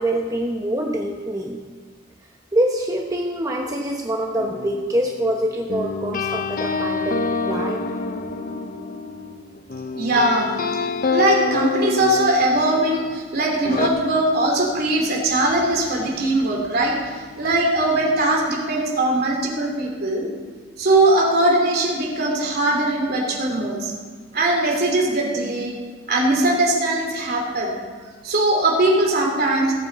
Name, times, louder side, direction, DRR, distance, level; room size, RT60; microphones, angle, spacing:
voice 1, 0.0-1.6 2.5-7.8, right 1 dB, 15° right, 1 dB, 0.8 m, -25 dB
sound 1, 4.4-13.2 13.6-13.9, left 4 dB, 45° left, 0.7 m, -27 dB
voice 2, 9.9-10.5 11.1-20.3 20.8-23.9 24.3-25.8 26.1-27.8 28.2-29.7, right 2 dB, 50° right, -1 dB, 3.0 m, -20 dB
18.5 x 9.0 x 4.1 m, 1.5 s
head